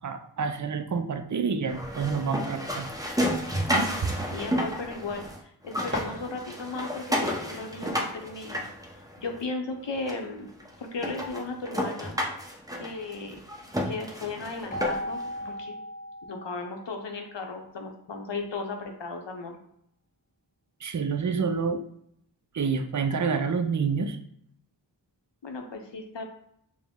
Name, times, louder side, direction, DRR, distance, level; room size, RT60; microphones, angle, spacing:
voice 1, 0.0-2.9 3.7-3.9 20.8-21.8 22.5-24.2, right 5 dB, 45° right, 8 dB, 0.4 m, -28 dB
sound 1, 1.7-5.4 5.6-9.4 10.1-10.2 10.6-10.7 11.0-15.2, equal, 10° right, 0.7 m, -31 dB
voice 2, 4.3-8.6 9.2-10.5 10.8-12.2 12.7-13.4 13.8-15.8 16.3-19.6 25.4-26.2, left 3 dB, 75° left, 3 dB, 0.7 m, -36 dB
sound 2, 5.5-6.9, left 1 dB, 25° right, 1.4 m, -37 dB
Keyboard (musical), 14.7-17.3, equal, 20° left, 0.4 m, -37 dB
4.9 x 2.1 x 3.6 m, 0.71 s
wide cardioid pair, 50°, 44 cm